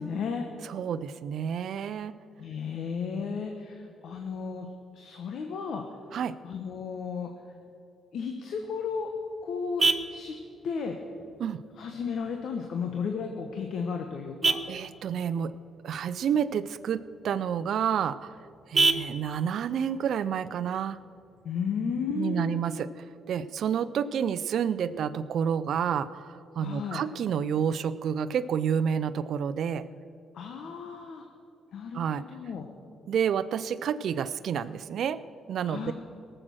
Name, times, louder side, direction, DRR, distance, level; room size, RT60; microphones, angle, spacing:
voice 1, 0.0-0.5 2.4-4.7 4.9-5.8 6.4-7.3 8.1-9.1 9.4-10.3 10.6-11.0 11.8-14.6 21.4-22.5 26.6-27.0 30.3-31.3 31.7-32.0 32.3-32.7 35.6-35.9, left 6 dB, 70° left, 4 dB, 1.1 m, -33 dB
voice 2, 0.6-2.2 6.1-6.4 11.4-11.6 14.7-15.6 15.8-18.3 18.7-21.0 22.2-22.9 23.3-29.9 31.9-32.2 33.1-35.2 35.5-35.9, right 8 dB, 65° right, 15 dB, 0.5 m, -29 dB
Vehicle horn car horn honking, 8.5-21.5, right 4 dB, 35° right, 0.7 m, -34 dB
18.0 x 7.7 x 6.3 m, 2.5 s
cardioid pair, 90°, 0 cm